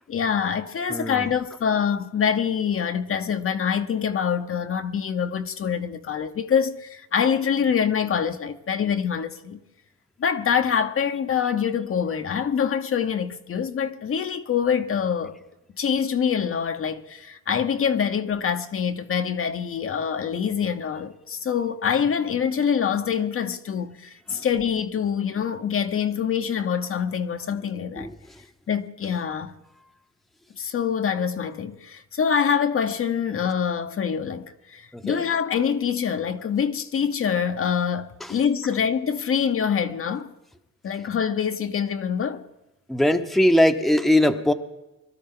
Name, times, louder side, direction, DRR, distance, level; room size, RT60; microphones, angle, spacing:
voice 1, 0.1-9.6 10.2-15.3 15.8-28.1 28.7-29.5 30.6-40.3 40.8-42.4, left 7 dB, 45° left, 0.9 m, -25 dB
voice 2, 0.9-1.3 24.3-24.4 28.0-28.1 34.9-35.2 42.9-44.5, left 1 dB, ahead, 0.9 m, -20 dB
22.5 x 12.5 x 3.8 m
cardioid pair, 90°, 30 cm